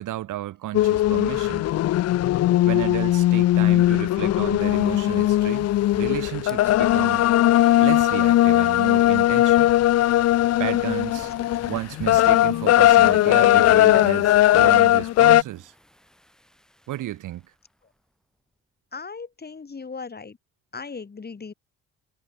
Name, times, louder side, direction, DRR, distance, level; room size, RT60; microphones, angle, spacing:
voice 1, 0.0-1.7 2.6-7.2 7.8-9.7 10.6-11.3 11.7-15.7 16.9-17.4, right 14 dB, 85° right, 6.9 m, -32 dB
sound 1, 0.7-15.4, left 14 dB, 55° left, 0.5 m, -18 dB
Fire, 4.6-17.7, equal, ahead, 7.7 m, -50 dB
voice 2, 11.2-11.5 18.9-20.4 20.7-21.5, left 5 dB, 30° left, 5.5 m, -38 dB
cardioid pair, 90°, 30 cm